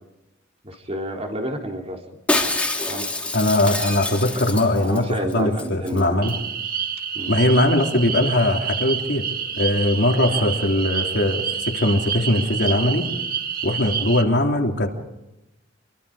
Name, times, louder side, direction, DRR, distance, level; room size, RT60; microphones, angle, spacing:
voice 1, 0.6-2.0 2.9-3.0 4.3-6.2 7.1-7.3 10.3-10.5, right 1 dB, 30° right, 2 dB, 3.6 m, -30 dB
Shatter, 2.3-5.0 5.3-5.4 5.6-6.0 6.3-6.4, left 2 dB, 5° left, 3.0 m, -26 dB
voice 2, 3.3-6.3 7.3-9.3 9.6-13.1 13.6-14.9, left 1 dB, 55° left, 2 dB, 3.4 m, -20 dB
sound 1, 6.2-14.2, right 7 dB, 45° right, 1.9 m, -28 dB
28.0 x 23.0 x 5.0 m, 0.94 s
head